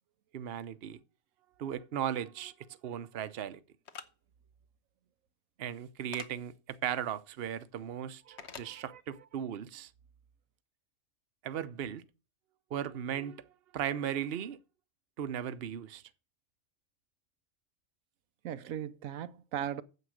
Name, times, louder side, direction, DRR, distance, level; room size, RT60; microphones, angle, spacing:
voice 1, 0.3-1.0 1.6-3.6 5.6-9.9 11.4-12.0 12.7-14.6 15.2-16.0, right 9 dB, 55° right, 0.9 m, -37 dB
sound 1, 3.9-4.1 6.1-6.3 8.4-8.7, left 7 dB, 60° left, 1.2 m, -44 dB
voice 2, 8.3-9.0 18.4-19.8, right 10 dB, 85° right, 1.1 m, -39 dB
9.4 x 7.7 x 6.4 m
omnidirectional pair, 1.4 m